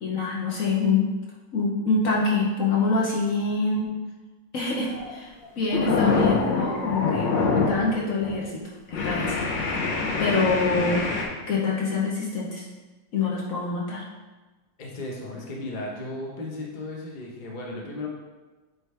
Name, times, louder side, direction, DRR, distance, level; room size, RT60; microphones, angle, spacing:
voice 1, 0.0-1.1 1.5-4.0 4.5-8.6 8.9-9.4 10.2-11.1 11.5-12.7 13.1-14.0, left 3 dB, 55° left, -4 dB, 1.1 m, -25 dB
sound 1, 4.8-5.1 5.4-7.9 8.2-8.5 8.9-11.2, left 4 dB, 75° left, 1.5 m, -25 dB
voice 2, 14.8-18.1, left 2 dB, 40° left, -2 dB, 0.7 m, -35 dB
8.8 x 3.3 x 3.3 m, 1.2 s
omnidirectional pair, 2.0 m